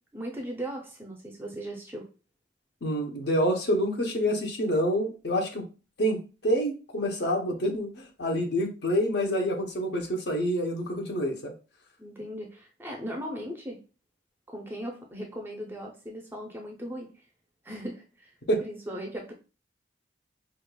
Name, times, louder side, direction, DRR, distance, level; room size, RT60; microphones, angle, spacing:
voice 1, 0.1-2.1 12.0-13.8 14.5-17.1 17.6-18.3 18.6-19.3, equal, 10° right, 0 dB, 0.5 m, -38 dB
voice 2, 2.8-5.7 6.0-11.5 18.5-18.6, equal, 55° left, 3 dB, 0.8 m, -27 dB
5.0 x 2.4 x 2.2 m, 0.33 s
head